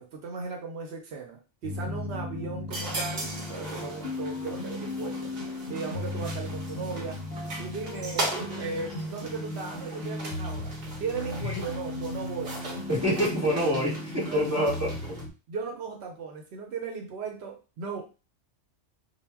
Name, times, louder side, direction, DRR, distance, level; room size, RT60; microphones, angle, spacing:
voice 1, 0.0-5.3 5.7-7.2 7.6-10.7 11.0-12.6 14.2-14.7 15.5-18.0, right 5 dB, 70° right, 2 dB, 0.8 m, -37 dB
sound 1, 1.6-15.3, left 2 dB, 65° left, 0.7 m, -36 dB
sound 2, 2.7-15.2, right 2 dB, 45° right, 0.7 m, -39 dB
voice 2, 12.9-15.2, equal, 15° right, -6 dB, 0.9 m, -27 dB
2.1 x 2.0 x 3.3 m, 0.33 s
omnidirectional pair, 1.2 m